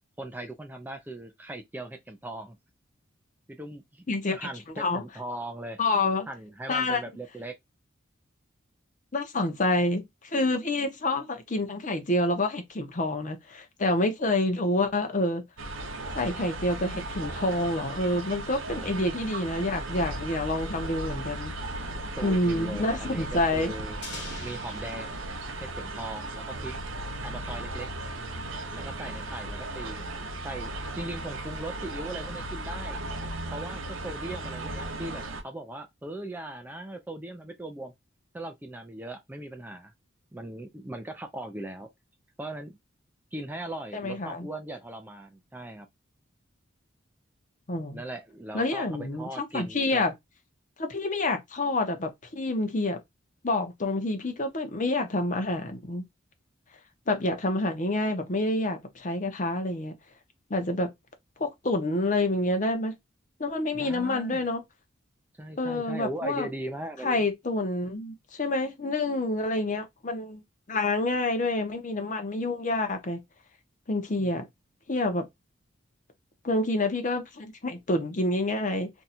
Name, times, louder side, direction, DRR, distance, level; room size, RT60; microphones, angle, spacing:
voice 1, 0.2-2.6 3.5-4.1 4.3-5.8 6.3-7.5 18.7-19.0 21.9-24.0 24.4-25.2 25.7-26.7 27.2-27.9 28.7-30.1 30.4-30.7 31.0-33.0 33.5-37.9 38.3-39.9 40.3-41.9 42.4-42.8 43.3-45.9 47.9-50.0 63.7-64.4 65.4-67.2 74.2-74.3, right 1 dB, 10° right, 0.3 m, -39 dB
voice 2, 5.8-6.3 6.7-7.0 9.1-15.4 16.1-21.5 22.2-23.7 43.9-44.5 47.7-48.0 48.5-50.1 50.8-53.0 53.4-56.0 57.1-59.9 60.5-60.9 61.4-62.9 63.4-64.6 65.6-66.5 67.0-70.4 70.7-73.2 73.9-74.5 74.9-75.2 76.4-78.9, left 2 dB, 40° left, 0.7 m, -28 dB
sound 1, 15.6-35.4, right 2 dB, 85° right, 0.7 m, -36 dB
sound 2, 24.0-26.8, left 3 dB, 60° left, 1.3 m, -45 dB
2.7 x 2.3 x 4.1 m
head